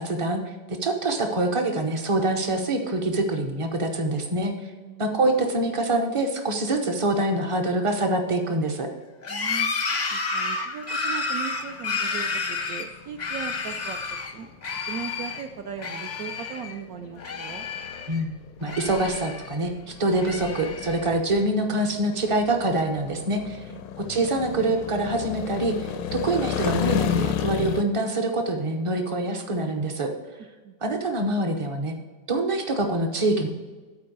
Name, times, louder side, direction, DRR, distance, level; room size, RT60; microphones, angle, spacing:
voice 1, 0.0-4.7 5.0-8.9 18.1-18.3 18.6-23.7 24.0-30.1 30.8-31.9 32.3-33.5, right 2 dB, 35° right, 4 dB, 0.4 m, -25 dB
voice 2, 4.8-5.1 9.3-9.7 10.1-14.0 14.3-14.5 14.9-17.7 23.7-24.0 30.6-30.8, right 7 dB, 70° right, 7 dB, 0.8 m, -38 dB
sound 1, 9.2-14.3 14.6-15.4 15.8-16.8 17.0-18.2 18.6-19.6 20.1-21.1, left 4 dB, 50° left, 0.5 m, -30 dB
sound 2, 11.7-27.8, left 9 dB, 90° left, 1.3 m, -34 dB
8.5 x 4.5 x 6.6 m, 1.3 s
omnidirectional pair, 1.9 m